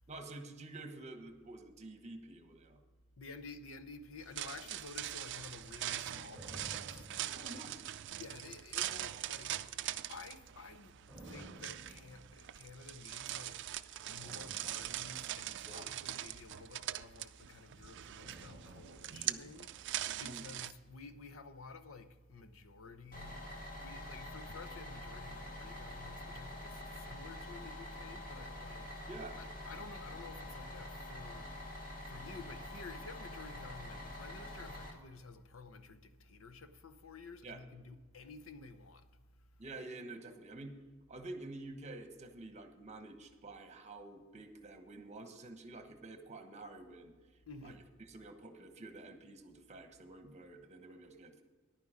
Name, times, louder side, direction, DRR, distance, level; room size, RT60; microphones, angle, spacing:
voice 1, 0.1-2.8 7.3-7.8 15.6-15.9 19.2-19.5 20.2-20.5 29.1-29.4 37.4-37.6 39.6-40.7 41.1-47.1 47.6-47.8 48.1-51.4, right 2 dB, 35° right, 1.1 m, -49 dB
voice 2, 3.2-7.6 8.2-13.7 14.0-23.5 23.8-31.8 32.0-39.7 47.4-47.9, left 4 dB, 85° left, 0.8 m, -52 dB
sound 1, 4.2-20.7, right 13 dB, 60° right, 0.4 m, -42 dB
sound 2, 6.3-8.2 8.7-10.0 11.1-12.8 14.2-16.6 18.2-20.4 20.6-20.7, right 1 dB, 5° left, 3.4 m, -56 dB
Bus, 23.1-34.9, left 1 dB, 45° left, 2.2 m, -46 dB
10.5 x 9.5 x 5.0 m
head